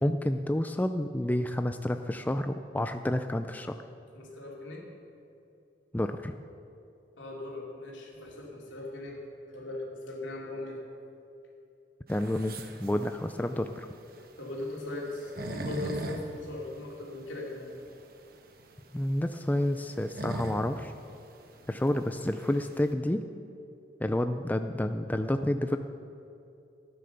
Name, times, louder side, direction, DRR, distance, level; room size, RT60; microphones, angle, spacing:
voice 1, 0.0-3.8 5.9-6.3 12.1-13.9 18.9-20.9 21.7-23.2 24.0-25.8, left 1 dB, 10° left, 8 dB, 0.3 m, -29 dB
voice 2, 4.1-4.9 7.2-9.2 9.5-10.8 14.4-17.7, left 2 dB, 85° left, -2 dB, 2.9 m, -39 dB
sound 1, 12.1-22.9, right 1 dB, 50° right, 1.2 m, -41 dB
15.0 x 10.0 x 6.7 m, 2.7 s
head